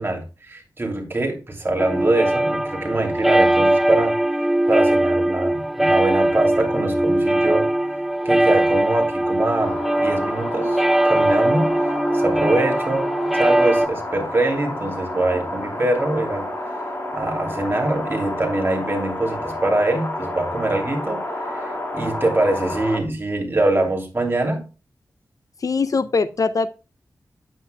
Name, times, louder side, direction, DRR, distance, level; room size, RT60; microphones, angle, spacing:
voice 1, 0.0-4.2 4.7-7.7 8.2-16.5 17.1-21.6 21.9-24.7, right 2 dB, 30° right, 2.8 m, -23 dB
sound 1, 1.8-13.9, right 1 dB, 5° right, 0.5 m, -20 dB
sound 2, 9.6-23.0, left 1 dB, 30° left, 2.3 m, -30 dB
voice 2, 25.6-26.7, left 4 dB, 55° left, 0.5 m, -21 dB
9.3 x 8.2 x 2.2 m
wide cardioid pair, 90°, 7 cm